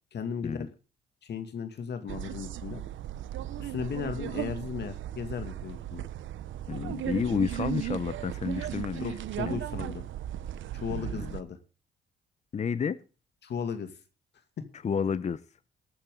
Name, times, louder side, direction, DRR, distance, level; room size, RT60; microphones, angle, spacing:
voice 1, 0.1-0.7 1.2-2.8 3.6-6.0 9.0-10.0 10.7-11.6 13.4-13.9 14.6-14.7, left 7 dB, 60° left, 2.3 m, -36 dB
sound 1, 2.1-11.4, right 12 dB, 75° right, 0.9 m, -36 dB
voice 2, 6.7-9.0 9.4-9.6 10.9-11.3 12.5-13.0 14.8-15.4, left 6 dB, 35° left, 0.8 m, -30 dB
20.0 x 8.8 x 3.8 m
cardioid pair, 90°, 20 cm